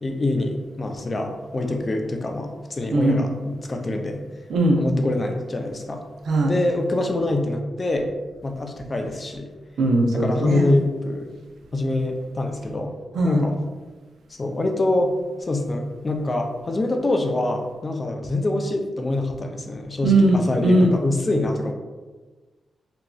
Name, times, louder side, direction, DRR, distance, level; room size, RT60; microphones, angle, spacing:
voice 1, 0.0-4.2 4.8-6.0 6.5-8.1 8.4-9.5 10.1-11.4 11.7-12.9 13.2-13.5 14.4-15.1 15.5-21.7, left 2 dB, 30° left, 3 dB, 0.3 m, -25 dB
voice 2, 2.9-3.3 4.5-4.8 6.3-6.5 9.8-10.7 13.1-13.4 20.0-21.0, right 1 dB, 80° right, 2 dB, 0.4 m, -19 dB
2.9 x 2.5 x 2.3 m, 1.3 s
cardioid pair, 90°, 0 cm